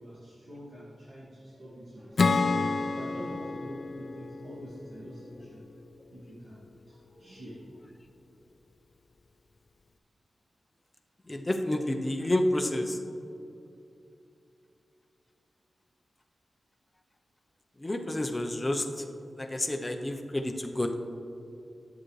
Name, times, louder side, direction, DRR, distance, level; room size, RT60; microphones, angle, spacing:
voice 1, 0.0-5.7 5.9-8.1 8.3-8.5, equal, 65° right, -10 dB, 2.1 m, -46 dB
Acoustic guitar / Strum, 2.2-5.6, left 4 dB, 55° left, 0.4 m, -29 dB
voice 2, 11.3-13.0 17.8-19.0 19.4-20.9, left 1 dB, 20° left, 4 dB, 0.7 m, -29 dB
11.0 x 7.7 x 3.2 m, 2.7 s
wide cardioid pair, 100°, 0 cm